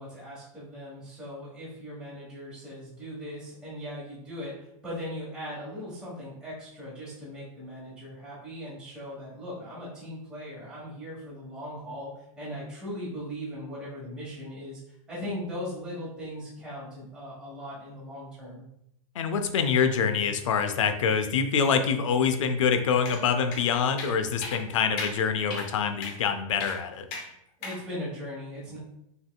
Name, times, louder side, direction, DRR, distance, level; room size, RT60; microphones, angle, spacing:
voice 1, 0.0-14.8 15.1-18.6 27.6-28.8, equal, 5° right, -8 dB, 1.4 m, -39 dB
voice 2, 19.2-27.1, left 6 dB, 60° left, 7 dB, 0.6 m, -25 dB
sound 1, 23.1-23.2 23.5-23.6 24.0-24.1 24.4-24.6 25.0-25.1 25.5-25.7 26.0-26.2 26.6-26.8 27.1-27.3 27.6-27.8, left 3 dB, 25° left, 0.7 m, -35 dB
5.5 x 3.7 x 2.3 m, 0.78 s
supercardioid pair, 175°, 18 cm